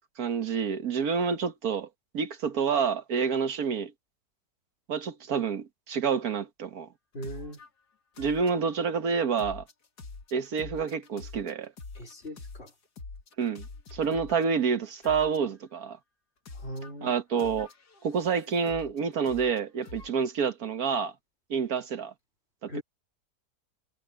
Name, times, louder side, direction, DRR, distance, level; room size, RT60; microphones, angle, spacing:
voice 1, 0.2-1.9 2.1-3.9 4.9-6.9 8.2-9.6 10.3-11.7 13.4-13.6 13.9-16.0 17.0-17.7 18.0-21.1 21.5-22.1 22.6-22.8, right 6 dB, 70° right, 1.7 m, -28 dB
voice 2, 7.1-7.6 11.9-12.7 16.5-17.1 22.7-22.8, equal, 40° left, 2.3 m, -39 dB
sound 1, 7.2-7.7 8.2-8.9 9.4-14.4 15.0-15.6 16.5-16.9 17.4-19.0 19.2-20.1, left 3 dB, 85° left, 2.7 m, -45 dB
omnidirectional pair, 1.7 m